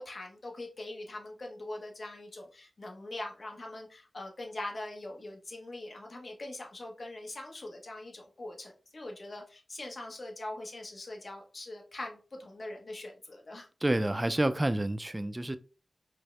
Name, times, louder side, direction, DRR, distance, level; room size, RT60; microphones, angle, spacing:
voice 1, 0.0-13.7, left 2 dB, 55° left, 0.9 m, -42 dB
voice 2, 13.8-15.6, right 1 dB, 20° right, 0.3 m, -28 dB
4.6 x 2.0 x 3.2 m
wide cardioid pair, 60°, 0 cm